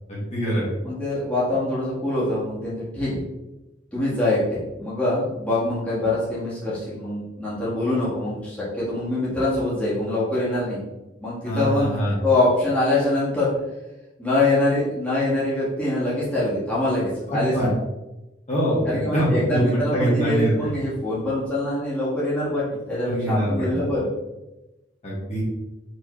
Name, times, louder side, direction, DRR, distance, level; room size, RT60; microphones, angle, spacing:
voice 1, 0.1-0.7 11.4-12.2 17.3-17.7 18.5-19.6 19.9-20.7 23.1-23.8 25.0-25.4, equal, 40° left, -7 dB, 1.5 m, -24 dB
voice 2, 0.8-3.2 3.9-4.4 4.8-10.8 11.2-11.9 12.2-13.5 14.2-17.7 18.9-24.1, left 2 dB, 5° left, -10 dB, 1.4 m, -24 dB
4.5 x 3.2 x 3.0 m, 1.0 s
head